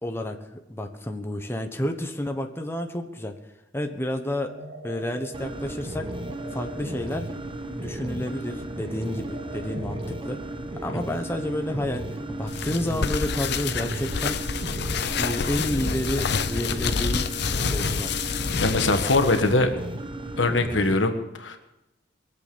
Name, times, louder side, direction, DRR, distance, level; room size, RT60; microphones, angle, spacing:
voice 1, 0.0-3.4 3.7-4.5 4.8-6.1 6.5-7.3 7.8-10.4 10.8-14.4 15.1-18.2, left 1 dB, 15° left, 4 dB, 1.1 m, -30 dB
sound 1, 4.5-12.8, right 1 dB, 50° right, 2.6 m, -44 dB
sound 2, 5.3-20.9, right 1 dB, 30° right, 1.0 m, -34 dB
sound 3, 12.5-19.5, left 5 dB, 65° left, 0.8 m, -28 dB
voice 2, 18.6-19.7 20.4-21.6, left 2 dB, 85° left, 7 dB, 1.5 m, -22 dB
22.5 x 7.9 x 6.9 m, 0.96 s
head